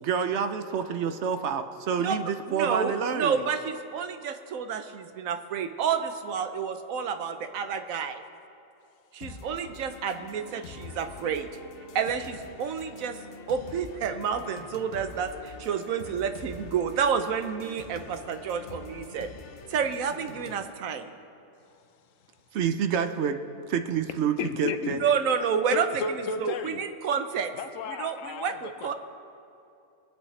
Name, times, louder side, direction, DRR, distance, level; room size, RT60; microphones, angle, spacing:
voice 1, 0.0-3.5 22.5-23.4 23.7-24.3 24.6-25.0, right 7 dB, 65° right, 8 dB, 0.8 m, -28 dB
voice 2, 2.5-8.2 9.1-11.5 11.9-13.2 13.5-19.3 19.7-21.1 25.0-25.9 26.1-27.5 27.9-28.9, right 7 dB, 90° right, 8 dB, 1.2 m, -29 dB
sound 1, 9.2-20.6, left 5 dB, 55° left, 0.7 m, -45 dB
voice 3, 24.4-25.1 25.7-26.8 27.5-28.9, left 5 dB, 75° left, 10 dB, 1.1 m, -33 dB
21.5 x 8.3 x 3.2 m, 2.7 s
omnidirectional pair, 1.4 m